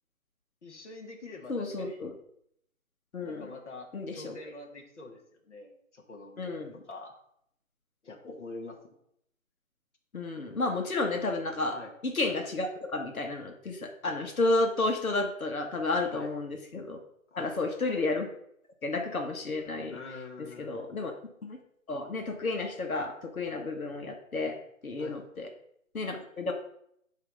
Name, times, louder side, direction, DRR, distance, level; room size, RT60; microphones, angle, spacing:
voice 1, 0.6-2.0 3.2-5.2 5.5-7.1 8.0-8.9 11.7-11.9 16.1-16.3 17.3-17.6 19.9-20.8 25.0-25.2, left 3 dB, 55° left, 1 dB, 1.6 m, -45 dB
voice 2, 1.5-2.1 3.1-3.5 3.9-4.3 6.4-6.7 8.2-8.4 10.1-11.7 12.0-17.0 17.4-18.3 18.8-20.0 20.6-21.1 21.4-21.6 21.9-24.6 24.8-25.5 25.9-26.5, left 2 dB, 85° left, 3 dB, 1.6 m, -31 dB
9.5 x 3.3 x 5.3 m, 0.72 s
hypercardioid pair, 170°, 41 cm